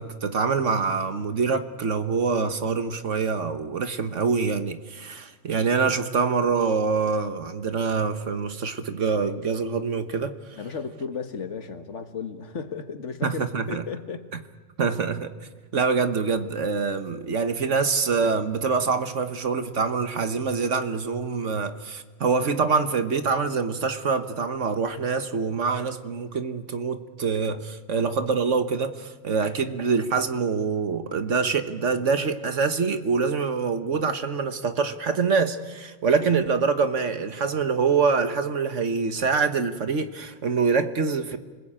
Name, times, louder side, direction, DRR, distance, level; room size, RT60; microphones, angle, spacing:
voice 1, 0.0-10.6 13.2-13.8 14.8-15.3 15.7-41.4, right 5 dB, 60° right, 1.5 m, -25 dB
voice 2, 10.6-14.3, left 5 dB, 55° left, 1.8 m, -34 dB
29.5 x 20.5 x 8.9 m
omnidirectional pair, 1.5 m